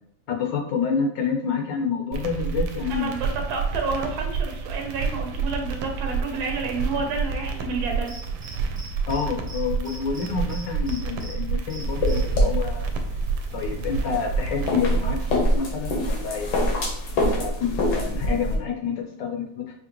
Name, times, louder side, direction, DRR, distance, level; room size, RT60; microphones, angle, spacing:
voice 1, 0.3-3.1 9.1-12.9 13.5-16.5 17.2-19.7, left 6 dB, 75° left, 1 dB, 1.2 m, -28 dB
sound 1, 2.1-15.4, right 5 dB, 80° right, 1.3 m, -29 dB
voice 2, 2.9-8.1, right 4 dB, 60° right, 2 dB, 1.2 m, -30 dB
Cricket, 8.1-9.2 9.5-9.6 9.8-11.3 11.7-12.2, right 2 dB, 40° right, 0.3 m, -41 dB
sound 2, 11.8-18.6, equal, 90° left, 1.8 m, -25 dB
5.1 x 2.8 x 2.9 m, 0.69 s
omnidirectional pair, 2.1 m